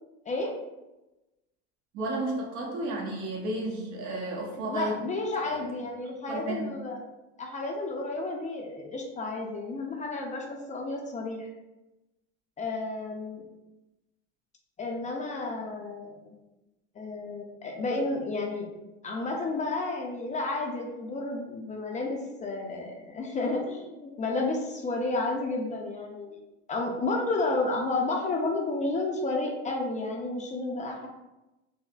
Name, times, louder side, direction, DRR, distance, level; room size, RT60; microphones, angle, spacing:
voice 1, 1.9-5.0 5.4-5.6 6.3-6.7, right 2 dB, 65° right, -1 dB, 0.9 m, -32 dB
voice 2, 4.7-7.0 7.4-11.5 12.6-13.4 14.8-16.3 16.9-18.7 19.0-26.4 26.7-31.1, left 2 dB, 25° left, 0 dB, 0.4 m, -31 dB
3.9 x 2.0 x 2.3 m, 1.0 s
supercardioid pair, 100°, 33 cm